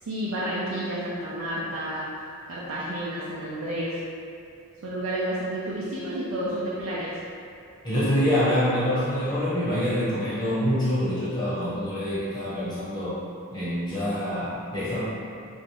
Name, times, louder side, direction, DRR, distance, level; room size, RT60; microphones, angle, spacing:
voice 1, 0.0-2.0 2.5-4.0 4.8-7.2, right 1 dB, 75° right, -7 dB, 0.5 m, -30 dB
voice 2, 7.8-13.2 13.5-15.0, equal, 20° left, -12 dB, 1.3 m, -26 dB
3.4 x 2.6 x 3.4 m, 2.5 s
head